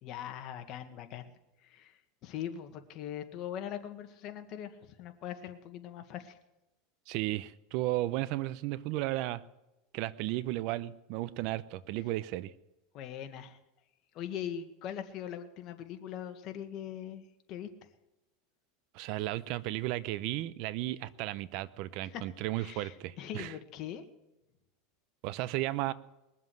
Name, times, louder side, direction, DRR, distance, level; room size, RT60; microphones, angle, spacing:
voice 1, 0.0-1.3 1.6-6.4 12.9-13.6 14.1-17.9 22.0-22.2 22.6-24.0, left 10 dB, 45° left, 7 dB, 1.7 m, -41 dB
voice 2, 7.1-9.4 9.9-12.5 18.9-23.5 25.2-25.9, right 16 dB, 55° right, 17 dB, 0.7 m, -34 dB
21.0 x 7.4 x 7.9 m, 0.97 s
supercardioid pair, 135°, 0 cm